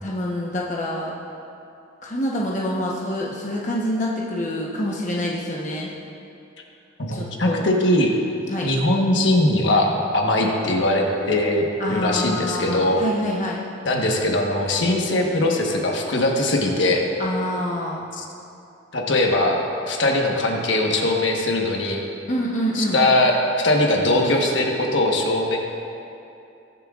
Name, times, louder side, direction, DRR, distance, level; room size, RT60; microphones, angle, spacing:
voice 1, 0.0-1.1 2.0-5.9 7.1-7.7 8.5-8.7 10.4-10.5 11.8-13.6 17.2-18.1 22.3-23.0, equal, 40° left, -4 dB, 1.0 m, -26 dB
voice 2, 7.1-8.1 8.6-13.0 13.8-17.0 18.2-18.3 18.9-19.6 19.9-22.0 22.7-23.4 23.6-25.6, left 1 dB, 70° left, 0 dB, 1.2 m, -20 dB
20.5 x 7.4 x 2.5 m, 2.7 s
head